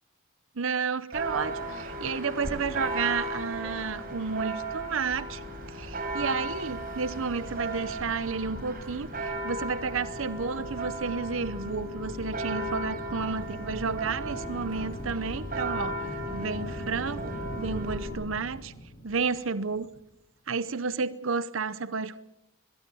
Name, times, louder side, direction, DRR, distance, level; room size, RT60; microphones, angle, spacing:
voice 1, 0.6-5.4 5.7-18.7 19.0-19.9 20.5-22.2, right 5 dB, 75° right, 0.8 m, -31 dB
Church bell, 1.1-18.1, right 1 dB, 45° right, 5.1 m, -36 dB
sound 1, 3.1-20.0, equal, 65° left, 6.3 m, -42 dB
23.0 x 22.0 x 7.0 m
head